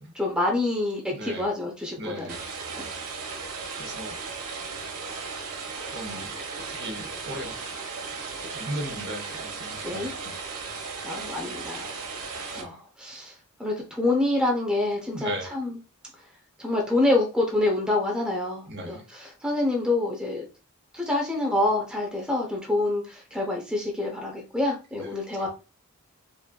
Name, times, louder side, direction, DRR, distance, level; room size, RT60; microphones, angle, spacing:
voice 1, 0.1-2.4 2.8-2.9 9.8-10.1 11.0-11.9 12.3-13.3 13.6-15.8 16.6-20.4 20.9-25.5, left 2 dB, 5° right, 0.7 m, -27 dB
voice 2, 1.1-1.5 2.0-2.5 3.7-4.1 5.0-5.1 5.8-7.7 8.4-10.5 12.5-12.7 15.1-15.5 18.7-19.0 25.4-25.5, right 1 dB, 50° right, 0.9 m, -37 dB
sound 1, 2.3-12.6, right 4 dB, 90° right, 1.0 m, -36 dB
5.2 x 2.6 x 2.2 m
head